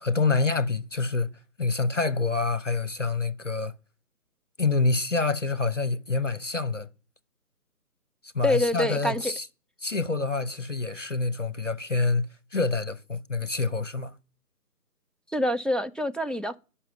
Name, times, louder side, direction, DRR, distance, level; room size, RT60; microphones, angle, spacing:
voice 1, 0.0-1.3 1.6-3.7 4.6-6.9 8.2-9.5 9.8-12.3 12.5-14.2, left 3 dB, 50° left, 0.7 m, -27 dB
voice 2, 8.4-9.3 15.3-16.6, left 1 dB, ahead, 0.4 m, -26 dB
9.5 x 5.6 x 5.8 m
figure-of-eight pair, 170°, 48 cm